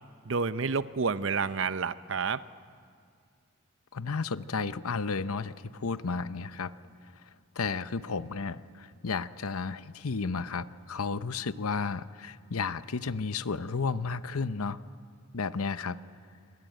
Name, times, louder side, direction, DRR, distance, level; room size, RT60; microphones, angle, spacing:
voice 1, 0.2-2.4, right 5 dB, 60° right, 15 dB, 0.7 m, -29 dB
voice 2, 3.9-6.7 7.6-14.8 15.3-16.0, left 4 dB, 85° left, 14 dB, 0.8 m, -33 dB
25.0 x 25.0 x 9.1 m, 2.3 s
head